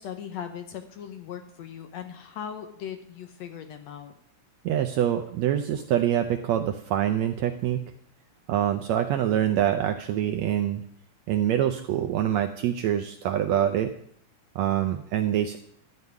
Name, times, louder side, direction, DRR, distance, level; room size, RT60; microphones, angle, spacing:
voice 1, 0.0-4.1, left 8 dB, 70° left, 7 dB, 1.8 m, -39 dB
voice 2, 4.6-7.8 8.5-10.8 11.3-13.9 14.5-15.6, right 10 dB, 80° right, 7 dB, 1.6 m, -25 dB
13.0 x 5.4 x 9.3 m, 0.65 s
omnidirectional pair, 3.7 m